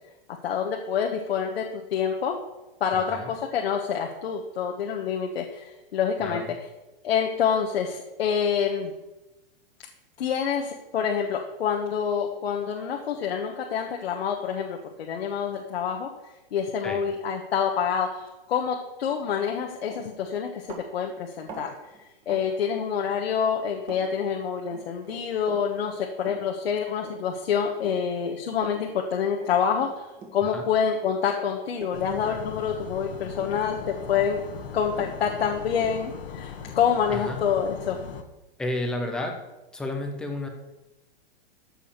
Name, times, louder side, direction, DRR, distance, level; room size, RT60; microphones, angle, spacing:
voice 1, 0.4-2.4 2.8-6.4 7.0-8.9 10.2-16.1 16.5-21.7 22.3-30.1 30.3-34.4 34.7-38.0, left 7 dB, 85° left, 1 dB, 1.4 m, -27 dB
voice 2, 2.9-3.3 6.2-6.5 16.8-17.0 30.4-30.6 37.1-37.4 38.6-39.4 39.7-40.5, left 1 dB, 5° left, 3 dB, 0.4 m, -31 dB
Run, 19.5-19.6 19.8-23.2 23.5-24.0 24.3-30.6 30.9-33.1 33.3-34.3 34.5-37.9, right 3 dB, 15° right, 1.6 m, -44 dB
sound 1, 31.9-38.2, left 7 dB, 70° left, 1.5 m, -39 dB
14.0 x 4.9 x 6.9 m, 1.0 s
supercardioid pair, 170°, 30 cm